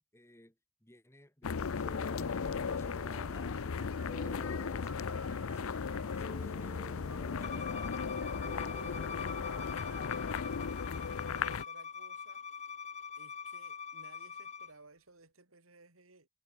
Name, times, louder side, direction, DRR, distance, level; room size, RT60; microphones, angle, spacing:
voice 1, 0.0-4.2, left 1 dB, 15° left, 5.2 m, -61 dB
sound 1, 1.4-11.6, left 5 dB, 80° left, 0.6 m, -36 dB
Piano, 1.8-10.6, right 1 dB, 10° right, 5.4 m, -52 dB
voice 2, 6.8-7.2 8.5-12.4 13.2-16.3, right 3 dB, 80° right, 4.7 m, -60 dB
Bowed string instrument, 7.4-14.7, left 6 dB, 35° left, 1.5 m, -44 dB
head